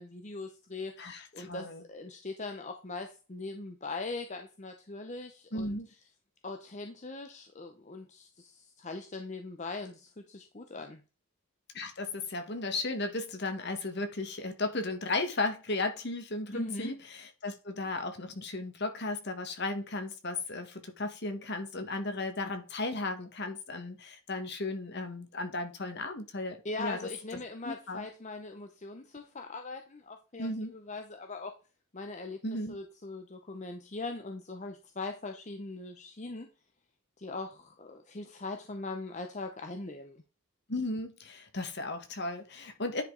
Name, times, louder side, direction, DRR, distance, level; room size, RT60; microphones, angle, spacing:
voice 1, 0.0-5.8 6.4-11.0 16.5-16.9 26.6-31.5 31.9-36.5 37.2-40.2, left 3 dB, 35° left, 0.8 m, -41 dB
voice 2, 1.0-1.8 5.5-5.9 11.7-27.0 27.6-28.1 30.4-30.7 32.4-32.8 40.7-43.0, left 2 dB, 55° left, 1.6 m, -35 dB
10.0 x 5.1 x 3.9 m
head